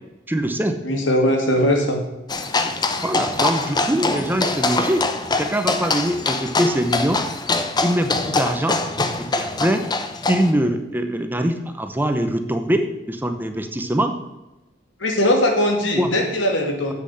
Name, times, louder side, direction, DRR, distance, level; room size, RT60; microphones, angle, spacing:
voice 1, 0.3-0.8 3.0-5.0 5.4-7.2 7.8-8.8 9.2-9.8 10.3-14.2 16.0-16.1, right 1 dB, 10° right, 7 dB, 0.7 m, -23 dB
voice 2, 0.8-2.0 15.0-16.9, left 1 dB, 80° left, 2 dB, 2.4 m, -20 dB
sound 1, 2.3-10.5, left 3 dB, 25° left, 0.8 m, -23 dB
7.9 x 6.9 x 7.6 m, 0.99 s
head